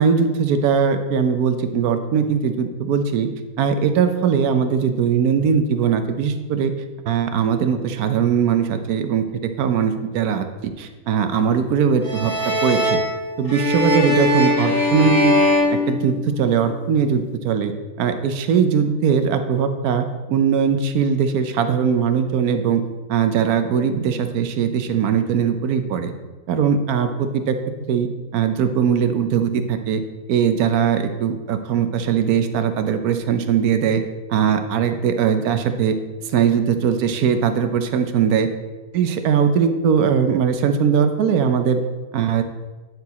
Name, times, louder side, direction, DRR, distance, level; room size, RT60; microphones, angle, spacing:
voice 1, 0.0-3.3 3.6-6.7 7.1-13.0 13.4-15.4 15.7-17.7 18.0-22.8 23.1-26.1 26.5-27.6 27.9-30.0 30.3-34.0 34.3-36.0 36.3-38.5 38.9-41.8 42.1-42.4, right 7 dB, 85° right, 8 dB, 1.2 m, -20 dB
sound 1, 12.0-16.6, left 1 dB, 15° right, 1.1 m, -20 dB
9.6 x 4.5 x 4.1 m, 1.2 s
omnidirectional pair, 1.5 m